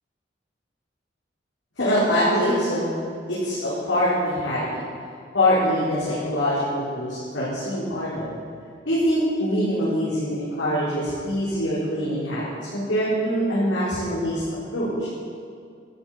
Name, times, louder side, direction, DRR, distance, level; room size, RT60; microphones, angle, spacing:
voice 1, 1.8-2.9 3.3-4.8 5.3-8.3 8.8-12.4 12.7-14.4 14.7-15.1, equal, 85° left, -11 dB, 4.7 m, -24 dB
13.0 x 9.2 x 9.4 m, 2.2 s
head